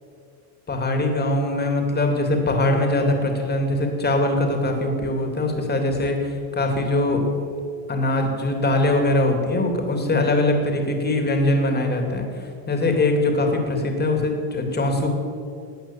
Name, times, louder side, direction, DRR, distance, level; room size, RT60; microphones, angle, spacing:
voice 1, 0.7-7.3 7.9-15.1, left 2 dB, 20° left, 3 dB, 2.7 m, -22 dB
17.0 x 9.1 x 7.2 m, 2.4 s
cardioid pair, 125°, 44 cm